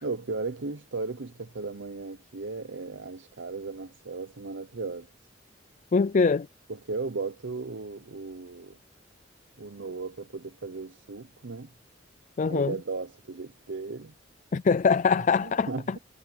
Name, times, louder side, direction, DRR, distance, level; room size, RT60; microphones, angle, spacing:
voice 1, 0.0-5.1 6.7-8.8 9.6-11.7 12.4-14.1 15.4-16.0, right 3 dB, 75° right, 0.8 m, -36 dB
voice 2, 5.9-6.5 12.4-12.8 14.5-16.0, left 5 dB, 40° left, 0.4 m, -23 dB
head